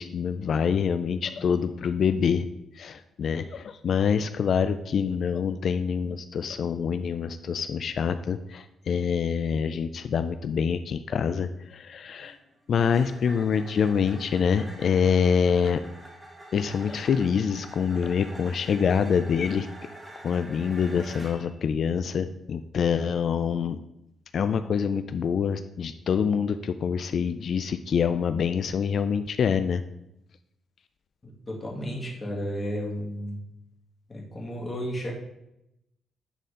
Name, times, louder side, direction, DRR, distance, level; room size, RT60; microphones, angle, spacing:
voice 1, 0.0-2.5 2.8-12.4 12.7-15.8 16.5-19.7 20.2-23.8 24.3-29.8, left 6 dB, 55° left, 11 dB, 0.3 m, -26 dB
sound 1, 12.1-21.6, right 1 dB, 10° right, 2.1 m, -46 dB
voice 2, 31.5-33.4 34.1-35.1, equal, 25° left, -2 dB, 2.0 m, -33 dB
9.9 x 4.3 x 3.7 m, 0.84 s
cardioid pair, 115°, 0 cm